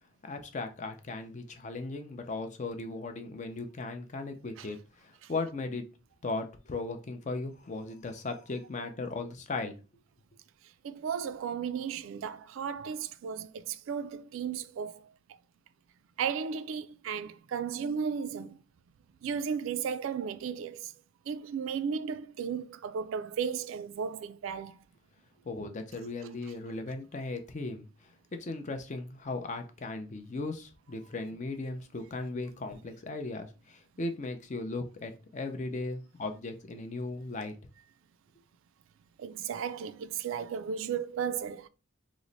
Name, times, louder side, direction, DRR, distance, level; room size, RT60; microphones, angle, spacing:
voice 1, 0.2-5.8 6.2-9.8 25.4-27.9 28.3-37.5, left 3 dB, 35° left, 0.5 m, -37 dB
voice 2, 10.8-15.1 16.2-18.6 19.2-20.9 21.3-24.8 39.2-41.7, right 7 dB, 80° right, 0.3 m, -35 dB
3.0 x 2.1 x 3.8 m
head